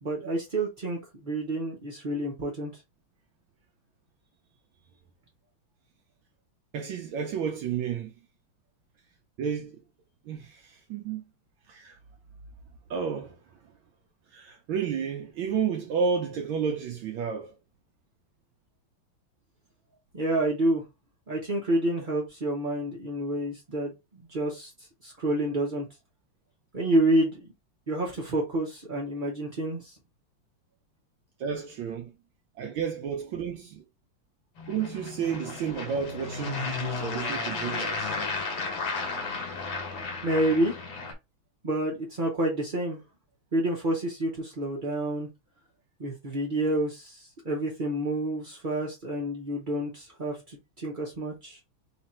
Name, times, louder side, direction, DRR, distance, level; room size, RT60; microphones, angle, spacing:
voice 1, 0.0-2.7 20.1-20.8 21.3-24.7 25.0-25.8 26.7-27.5 27.9-29.9 40.2-40.7 41.6-43.0 43.5-45.3 46.0-51.6, right 1 dB, 45° right, 0.6 m, -28 dB
voice 2, 6.7-8.1 9.4-9.8 10.3-11.2 11.7-12.0 12.9-13.4 14.3-17.5 31.4-32.1 32.6-33.8 34.7-38.2, right 6 dB, 75° right, 1.4 m, -31 dB
sound 1, 34.6-41.1, left 4 dB, 65° left, 1.7 m, -33 dB
4.1 x 2.5 x 4.2 m
omnidirectional pair, 2.4 m